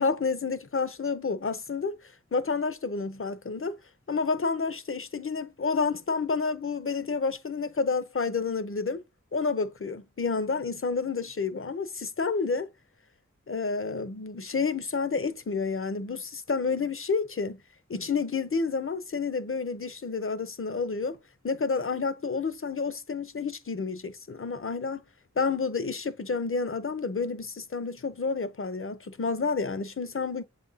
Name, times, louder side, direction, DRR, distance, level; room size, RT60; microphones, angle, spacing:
voice 1, 0.0-2.0 2.3-3.8 4.1-9.0 9.3-12.7 13.5-17.6 17.9-21.2 21.4-25.0 25.4-30.4, left 4 dB, 45° left, 0.6 m, -29 dB
7.5 x 2.6 x 5.4 m
wide cardioid pair, 55°, 30 cm